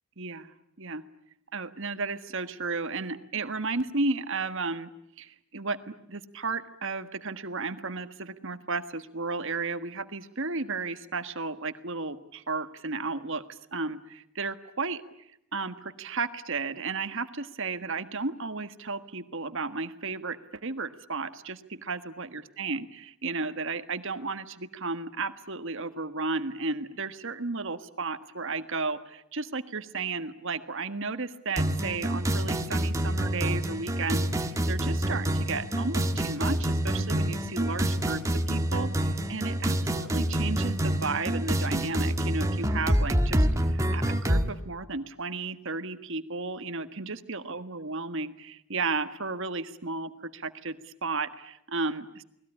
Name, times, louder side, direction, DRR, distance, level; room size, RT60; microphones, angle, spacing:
voice 1, 0.2-1.0 1.5-4.9 5.2-15.0 15.5-52.2, right 3 dB, 55° right, 10 dB, 1.5 m, -33 dB
sound 1, 31.6-44.5, right 1 dB, 15° right, 1.6 m, -27 dB
29.5 x 20.5 x 9.9 m, 0.78 s
head